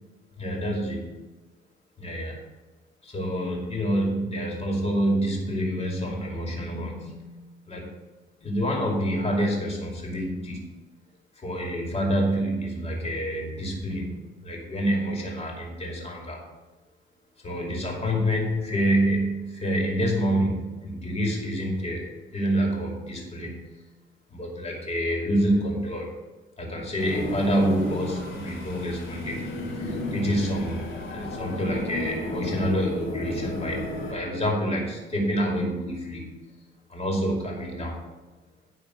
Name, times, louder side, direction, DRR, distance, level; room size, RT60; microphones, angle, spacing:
voice 1, 0.4-1.1 2.0-2.4 3.0-7.4 7.7-7.9 8.4-10.7 11.4-16.4 17.4-23.7 24.3-26.1 26.6-36.3 36.9-38.0, equal, 30° left, -1 dB, 2.5 m, -27 dB
sound 1, 27.0-34.1, left 1 dB, 85° left, 2.2 m, -33 dB
9.9 x 3.6 x 6.3 m, 1.2 s
cardioid pair, 90°, 20 cm